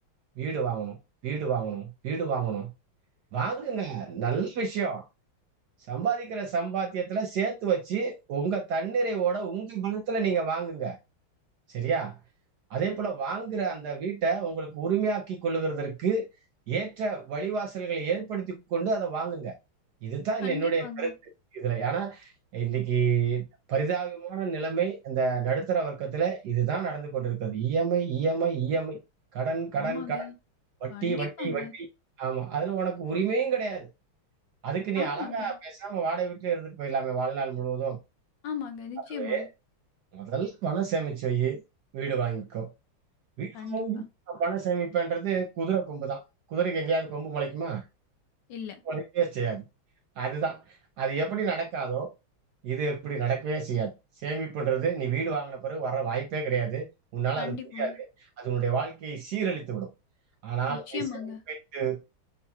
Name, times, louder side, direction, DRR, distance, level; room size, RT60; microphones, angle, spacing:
voice 1, 0.4-1.0 1.2-2.7 3.3-5.0 5.9-11.0 11.7-12.2 12.7-16.3 16.7-19.5 20.0-21.1 21.5-29.0 29.3-30.2 30.8-31.9 32.2-33.9 34.6-38.0 39.1-39.5 40.1-41.6 41.9-42.7 43.4-46.2 46.5-47.8 48.9-49.6 50.2-52.1 52.6-53.9 54.2-56.9 57.1-57.9 58.4-59.9 60.4-61.0 61.5-62.0, right 6 dB, 70° right, 1.0 m, -29 dB
voice 2, 20.4-21.1 29.8-30.3 30.9-31.7 35.0-35.6 38.4-39.5 43.5-44.0 48.5-48.8 57.4-58.0 60.7-61.4, left 8 dB, 70° left, 1.1 m, -37 dB
6.6 x 2.8 x 2.3 m
omnidirectional pair, 2.3 m